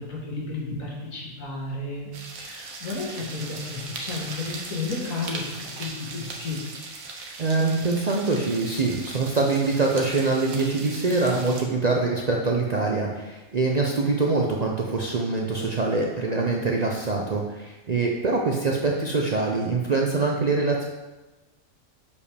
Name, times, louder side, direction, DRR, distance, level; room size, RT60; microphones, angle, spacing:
voice 1, 0.0-2.1 2.4-6.6, left 3 dB, 80° left, -3 dB, 1.9 m, -33 dB
sound 1, 2.1-11.6, right 3 dB, 90° right, 1.3 m, -38 dB
voice 2, 7.4-20.8, right 3 dB, 50° right, -1 dB, 0.5 m, -24 dB
6.7 x 5.0 x 3.4 m, 1.1 s
omnidirectional pair, 1.4 m